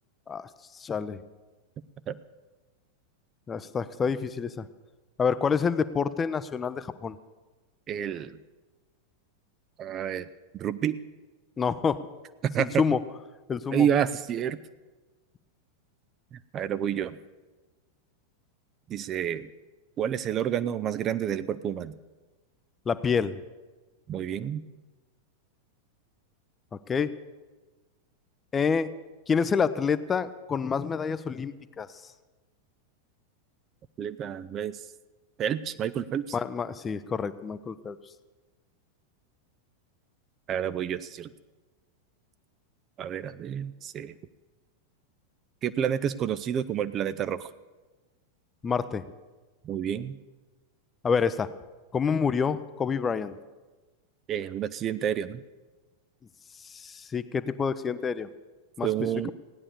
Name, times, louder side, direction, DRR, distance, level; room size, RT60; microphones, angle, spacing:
voice 1, 0.7-1.2 3.5-4.7 5.2-7.2 11.6-12.0 12.6-13.0 13.5-13.9 22.9-23.4 26.9-27.1 28.5-28.9 29.3-31.9 36.3-38.0 48.6-49.0 51.0-51.5 51.9-53.4 56.6-58.3 58.8-58.9, left 6 dB, 20° left, 14 dB, 0.6 m, -27 dB
voice 2, 7.9-8.4 9.8-10.3 10.5-11.0 12.4-12.8 13.7-14.6 16.3-17.2 18.9-19.5 20.0-21.9 24.1-24.6 34.0-34.9 35.4-36.4 40.5-41.3 43.0-44.1 45.6-47.5 49.6-50.2 54.3-55.4 58.8-59.3, right 9 dB, 30° right, 14 dB, 0.4 m, -29 dB
16.0 x 9.8 x 6.8 m, 1.2 s
figure-of-eight pair, 90°, 0 cm